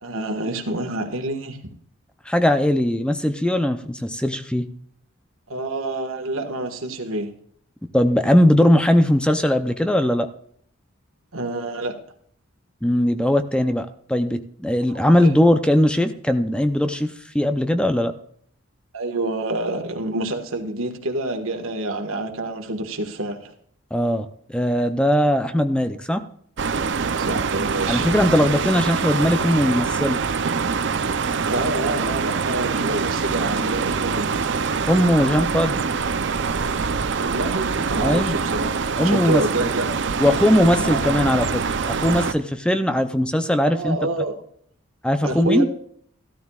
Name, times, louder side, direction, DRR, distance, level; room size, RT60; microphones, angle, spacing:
voice 1, 0.0-1.6 5.5-7.3 11.3-12.0 15.2-15.3 18.9-23.5 27.1-28.1 31.5-34.3 37.2-39.9 40.8-41.1 43.7-44.4 45.2-45.7, right 2 dB, 85° right, 5 dB, 1.6 m, -27 dB
voice 2, 2.3-4.7 7.9-10.3 12.8-18.1 23.9-26.2 27.9-30.2 34.9-35.9 38.0-38.4 39.0-39.7 40.2-44.0 45.0-45.7, left 1 dB, 5° left, 9 dB, 0.5 m, -20 dB
sound 1, 26.6-42.3, right 5 dB, 60° right, 0.6 m, -24 dB
14.5 x 13.0 x 2.4 m, 0.62 s
head